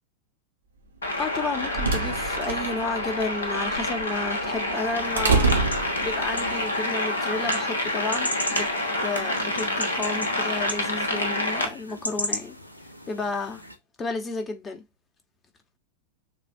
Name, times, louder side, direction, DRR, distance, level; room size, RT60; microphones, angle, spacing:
sound 1, 1.0-11.7, left 1 dB, 70° left, 1.4 m, -28 dB
voice 1, 1.2-5.5 6.0-8.7 9.0-12.6 13.1-13.6 14.0-14.8, left 3 dB, 20° left, 1.1 m, -32 dB
sound 2, 1.2-6.5, right 4 dB, 75° right, 1.0 m, -27 dB
sound 3, 4.8-13.8, equal, 85° left, 0.7 m, -37 dB
6.7 x 2.5 x 2.7 m
figure-of-eight pair, 90°, 0 cm